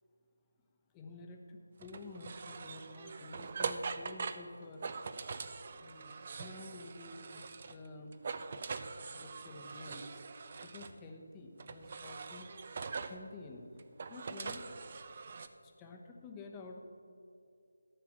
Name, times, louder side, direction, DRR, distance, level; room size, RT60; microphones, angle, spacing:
voice 1, 0.9-4.9 5.8-8.1 9.2-10.2 10.6-12.5 13.0-13.7 14.1-14.6 15.6-16.8, left 3 dB, 15° left, 1 dB, 1.0 m, -50 dB
sound 1, 1.8-7.9 8.1-11.0 11.6-13.2 13.8-15.5, right 4 dB, 40° right, 0.5 m, -43 dB
13.0 x 5.9 x 7.2 m, 2.4 s
figure-of-eight pair, 160°, 0 cm